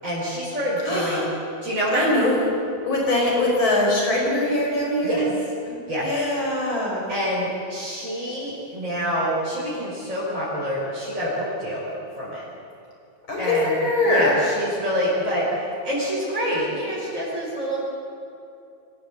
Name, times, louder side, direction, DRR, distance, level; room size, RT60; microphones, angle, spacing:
voice 1, 0.0-1.3 1.6-2.1 5.0-5.2 5.9-6.1 7.1-11.9 12.2-12.5 13.4-13.7 14.0-17.8, equal, 35° right, -8 dB, 5.2 m, -26 dB
voice 2, 0.8-1.3 1.9-2.4 2.8-5.3 5.6-7.1 13.3-14.4, left 1 dB, 75° left, -2 dB, 6.2 m, -22 dB
24.5 x 16.0 x 8.2 m, 2.6 s
omnidirectional pair, 2.2 m